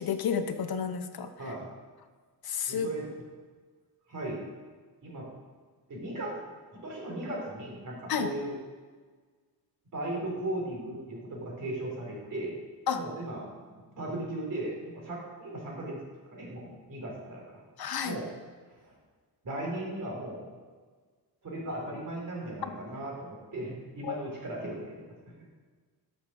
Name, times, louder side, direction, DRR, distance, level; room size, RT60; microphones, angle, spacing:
voice 1, 0.0-1.3 2.4-2.9 8.1-8.3 12.9-13.0 17.8-18.2 24.0-24.2, left 7 dB, 65° left, 8 dB, 0.8 m, -30 dB
voice 2, 2.7-3.1 4.1-4.5 5.0-5.3 5.9-6.4 6.7-8.6 9.9-12.6 12.9-13.5 14.0-17.6 18.0-18.3 18.8-18.9 19.4-20.5 21.4-25.1, right 1 dB, 50° right, -3 dB, 3.8 m, -37 dB
12.5 x 6.5 x 6.2 m, 1.5 s
wide cardioid pair, 155°, 40 cm